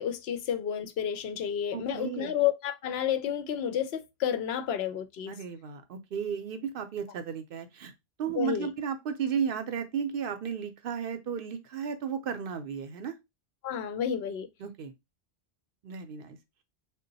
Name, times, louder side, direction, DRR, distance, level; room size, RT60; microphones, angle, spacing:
voice 1, 0.0-5.3 8.3-8.7 13.6-14.5, left 9 dB, 80° left, 0.8 m, -30 dB
voice 2, 1.7-2.3 5.3-7.9 8.2-13.1 14.6-14.9 15.8-16.4, right 7 dB, 65° right, 0.7 m, -34 dB
3.6 x 2.2 x 3.9 m
omnidirectional pair, 1.1 m